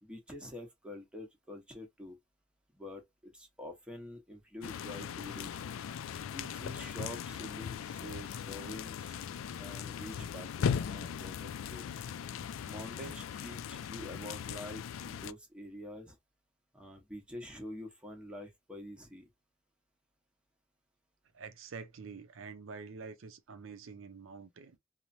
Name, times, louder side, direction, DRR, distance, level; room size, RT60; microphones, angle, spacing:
voice 1, 0.0-2.2 2.7-5.6 6.3-9.2 9.6-11.8 12.6-16.2 16.7-19.3, left 1 dB, 5° right, 0.8 m, -46 dB
sound 1, 4.6-15.3, left 7 dB, 85° left, 0.3 m, -39 dB
voice 2, 21.3-24.8, right 5 dB, 85° right, 0.5 m, -47 dB
3.1 x 2.1 x 2.5 m
head